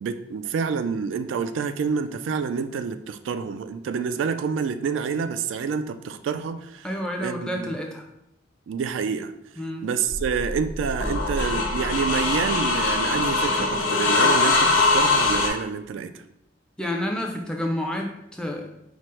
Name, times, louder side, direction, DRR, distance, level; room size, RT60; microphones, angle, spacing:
voice 1, 0.0-6.9 7.2-7.7 8.7-9.3 9.8-16.1, right 6 dB, 80° right, 0.3 m, -28 dB
voice 2, 6.8-8.1 9.6-9.9 16.8-18.7, left 1 dB, 5° left, 0.4 m, -29 dB
sound 1, 10.1-15.5, left 3 dB, 85° left, 1.1 m, -22 dB
4.8 x 2.0 x 4.3 m
head